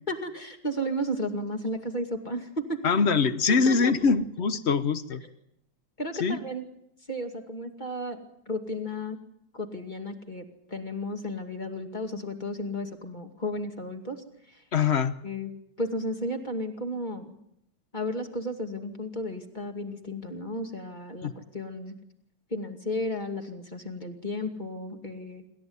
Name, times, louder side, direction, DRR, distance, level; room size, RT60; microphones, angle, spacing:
voice 1, 0.1-2.8 3.5-3.9 6.0-6.6 7.1-9.2 9.5-14.6 15.2-15.5 15.8-17.3 17.9-21.9 22.5-25.4, left 1 dB, 25° left, 4 dB, 2.5 m, -33 dB
voice 2, 2.8-5.2 6.2-6.4 14.7-15.1 21.2-21.3, left 5 dB, 45° left, 13 dB, 1.1 m, -23 dB
27.0 x 13.5 x 9.7 m, 0.75 s
omnidirectional pair, 2.0 m